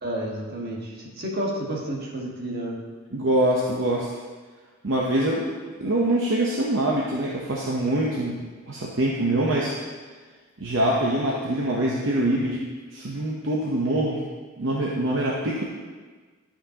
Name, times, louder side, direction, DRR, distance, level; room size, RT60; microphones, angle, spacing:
voice 1, 0.0-2.8, right 1 dB, 50° right, -3 dB, 1.5 m, -30 dB
voice 2, 3.1-4.1 4.8-5.5 5.8-8.4 8.7-9.7 10.6-12.6 12.9-14.2 14.6-15.6, right 1 dB, 65° right, -4 dB, 0.8 m, -24 dB
11.5 x 5.7 x 2.9 m, 1.4 s
head